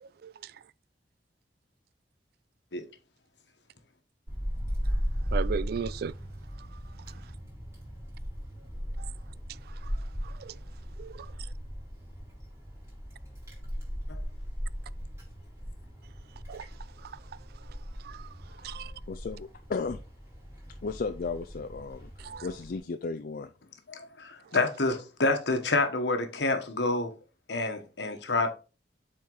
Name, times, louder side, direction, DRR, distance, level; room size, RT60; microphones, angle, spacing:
voice 1, 0.0-0.5 5.3-6.1 9.0-9.1 10.2-10.6 11.0-11.3 16.5-16.7 17.0-17.2 18.0-18.3 18.6-18.9 22.2-22.5, right 6 dB, 60° right, 0.3 m, -36 dB
Wind, 4.3-22.8, equal, 15° right, 4.2 m, -37 dB
voice 2, 18.6-20.0 20.8-23.5, left 4 dB, 55° left, 0.4 m, -35 dB
voice 3, 23.9-27.1 27.5-28.5, left 3 dB, 70° left, 1.2 m, -28 dB
7.5 x 4.3 x 3.9 m
head